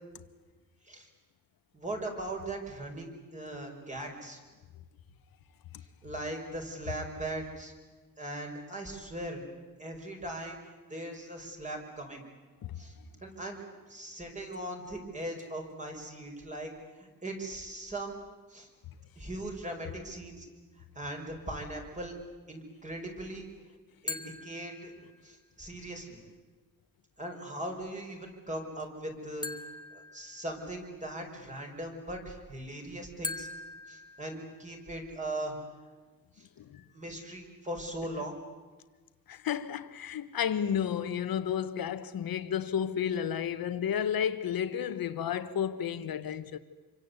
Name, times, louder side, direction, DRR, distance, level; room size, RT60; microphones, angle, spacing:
voice 1, 1.7-4.4 6.0-7.7 8.2-9.4 9.8-12.2 12.8-12.9 13.2-13.6 13.9-16.7 17.0-18.7 19.2-20.5 21.0-22.1 22.5-23.5 24.0-24.9 25.2-26.2 27.2-29.5 30.1-33.5 33.9-35.5 36.4-36.5 36.9-38.4, right 1 dB, 20° right, 5.2 m, -39 dB
sound 1, 24.1-25.4 29.4-31.0 33.2-34.9, left 3 dB, 10° left, 1.9 m, -42 dB
voice 2, 39.3-46.6, left 8 dB, 80° left, 1.5 m, -32 dB
27.0 x 24.0 x 8.2 m
wide cardioid pair, 160°, 35 cm